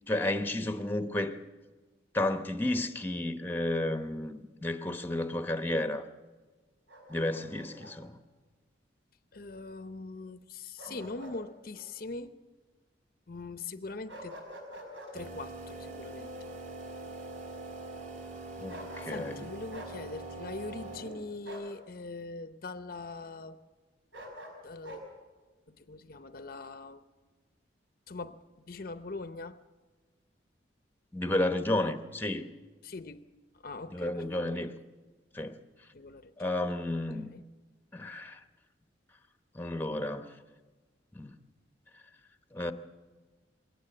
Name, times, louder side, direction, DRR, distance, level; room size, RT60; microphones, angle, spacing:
voice 1, 0.1-1.4 2.1-6.0 7.1-8.1 18.6-19.4 31.1-32.5 33.9-34.8 35.3-35.6 36.4-37.3 37.9-38.4 39.5-40.3 41.1-41.3 42.5-42.7, left 1 dB, 10° left, 0.9 m, -32 dB
Bark, 6.9-8.0 10.8-11.4 11.7-11.9 14.1-15.1 18.7-19.4 19.7-19.9 21.4-21.7 24.1-25.0, equal, 85° right, 5.5 m, -46 dB
voice 2, 9.3-12.4 13.3-14.4 15.1-16.5 19.0-23.6 24.6-25.0 25.7-27.1 28.1-29.6 32.8-33.3 33.5-34.5 35.9-36.6 37.1-37.4, left 3 dB, 50° left, 0.7 m, -42 dB
sound 1, 15.1-21.5, right 2 dB, 40° right, 3.0 m, -43 dB
21.0 x 17.5 x 7.9 m
head